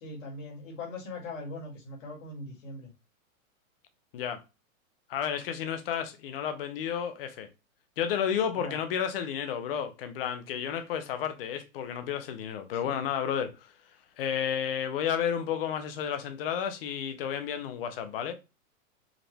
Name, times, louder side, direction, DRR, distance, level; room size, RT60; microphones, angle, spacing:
voice 1, 0.0-2.9 8.6-8.8 12.8-13.0, left 2 dB, 60° left, 2.1 m, -40 dB
voice 2, 5.1-7.5 8.0-13.7 14.2-18.3, left 8 dB, 40° left, 0.8 m, -32 dB
5.0 x 2.5 x 3.3 m
hypercardioid pair, 160°, 44 cm